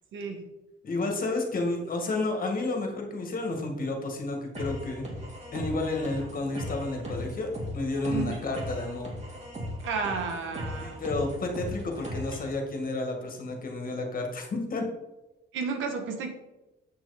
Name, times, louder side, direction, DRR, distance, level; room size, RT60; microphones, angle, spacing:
voice 1, 0.1-0.4 8.1-8.4 9.8-11.0 15.5-16.3, right 5 dB, 85° right, 5 dB, 1.5 m, -32 dB
voice 2, 0.8-5.1 5.5-9.1 10.8-14.8, left 2 dB, 45° left, 2 dB, 2.1 m, -31 dB
sound 1, 4.5-12.5, equal, 35° right, 2.9 m, -37 dB
7.9 x 6.2 x 4.3 m, 0.96 s
cardioid pair, 90°, 20 cm